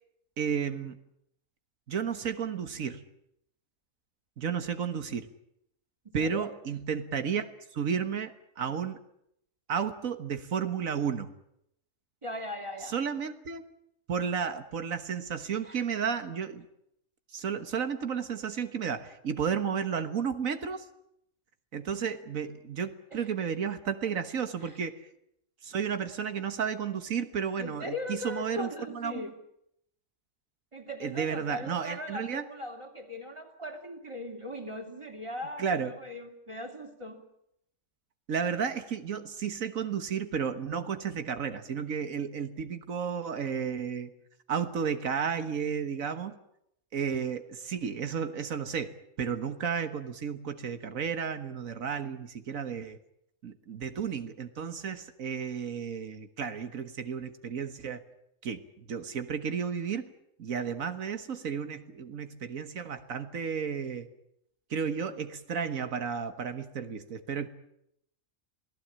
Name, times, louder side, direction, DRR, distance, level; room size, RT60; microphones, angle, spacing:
voice 1, 0.4-1.0 1.9-3.0 4.4-5.3 6.1-7.5 7.7-9.0 9.7-11.3 12.9-13.7 14.1-16.7 17.3-20.9 21.7-25.0 25.6-29.2 31.0-32.4 35.6-35.9 38.3-44.1 44.5-46.4 46.9-53.0 53.4-58.0 58.4-58.6 58.9-60.1 60.4-64.1 64.7-67.5, right 7 dB, 90° right, 9 dB, 1.8 m, -32 dB
voice 2, 6.0-6.5 12.2-13.0 15.6-15.8 23.1-23.3 24.6-24.8 27.6-29.3 30.7-37.2, left 1 dB, 20° right, 5 dB, 3.0 m, -39 dB
27.5 x 17.5 x 8.8 m, 0.76 s
omnidirectional pair, 1.4 m